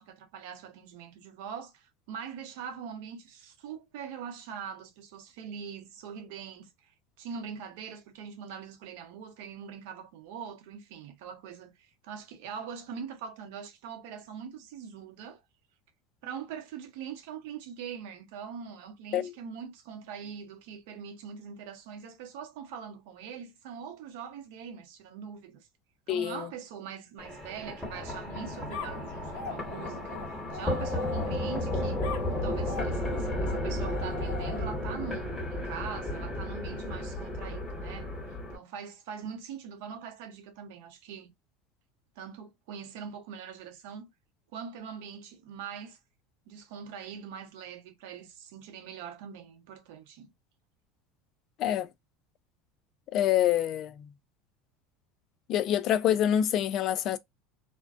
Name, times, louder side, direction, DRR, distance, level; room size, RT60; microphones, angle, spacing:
voice 1, 0.0-15.4 16.2-25.7 26.1-32.1 32.4-38.1 38.5-41.3 42.2-44.1 44.5-46.0 46.5-50.3, right 7 dB, 75° right, 0.8 m, -42 dB
voice 2, 26.1-26.5 51.6-51.9 53.1-54.1 55.5-57.2, left 11 dB, 45° left, 0.3 m, -26 dB
sound 1, 27.2-38.6, left 1 dB, 10° left, 1.3 m, -33 dB
sound 2, 28.7-31.6 32.0-34.9, left 6 dB, 70° left, 1.0 m, -42 dB
2.5 x 2.1 x 2.4 m
supercardioid pair, 130°, 0 cm